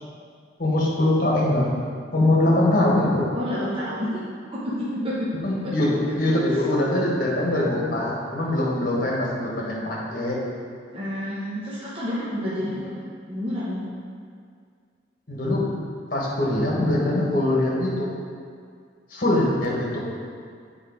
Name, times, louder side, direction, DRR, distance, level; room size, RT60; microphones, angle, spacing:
voice 1, 0.6-1.7 2.1-3.3 5.4-10.4 12.6-12.7 15.3-15.7 16.1-18.1 19.1-20.1, left 1 dB, 50° left, -4 dB, 1.5 m, -22 dB
voice 2, 3.3-4.2 4.5-5.3 5.6-5.7 10.9-12.9 13.3-13.9, equal, 30° right, -9 dB, 1.1 m, -29 dB
8.0 x 4.4 x 4.6 m, 2.2 s
head